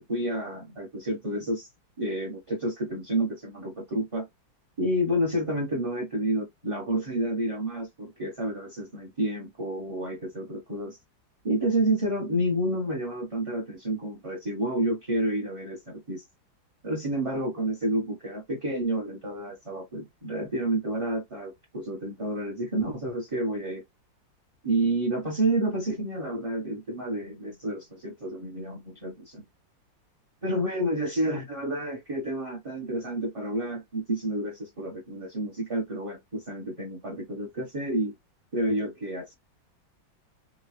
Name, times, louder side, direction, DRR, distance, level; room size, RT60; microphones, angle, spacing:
voice 1, 0.1-1.7 2.0-4.3 4.8-11.0 11.4-16.2 16.8-23.8 24.6-29.4 30.4-38.1 38.5-39.3, right 1 dB, 25° right, 0.8 m, -29 dB
3.7 x 2.2 x 3.3 m
omnidirectional pair, 2.1 m